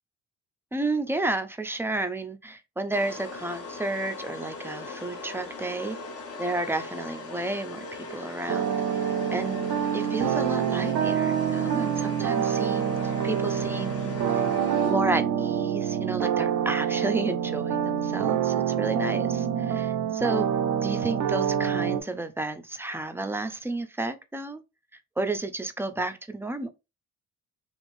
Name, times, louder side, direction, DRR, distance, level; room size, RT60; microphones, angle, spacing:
voice 1, 0.7-6.0 6.4-8.8 9.0-9.7 9.9-14.4 14.8-20.5 20.8-24.6 25.2-26.7, right 2 dB, 10° right, 0.4 m, -31 dB
sound 1, 2.9-15.3, left 3 dB, 50° left, 0.8 m, -40 dB
sound 2, 8.5-22.0, right 8 dB, 85° right, 0.5 m, -26 dB
3.2 x 2.5 x 2.6 m
cardioid pair, 90°, 30 cm